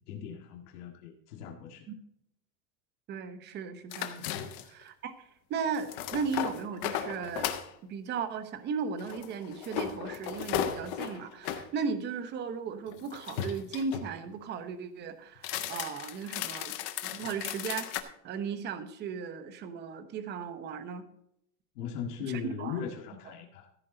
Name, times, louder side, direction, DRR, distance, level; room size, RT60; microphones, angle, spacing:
voice 1, 0.0-1.9 4.2-4.3 21.8-23.7, left 7 dB, 75° left, 3 dB, 2.0 m, -39 dB
voice 2, 3.1-4.3 4.8-5.1 5.5-7.5 7.8-16.7 17.1-17.9 18.2-21.0 22.4-22.8, right 5 dB, 25° right, 10 dB, 0.9 m, -36 dB
sound 1, 3.9-4.8 5.7-7.7 9.0-11.7 12.9-14.1 15.4-18.0, left 10 dB, 25° left, 0.3 m, -36 dB
14.5 x 8.4 x 3.8 m, 0.77 s
supercardioid pair, 175°, 46 cm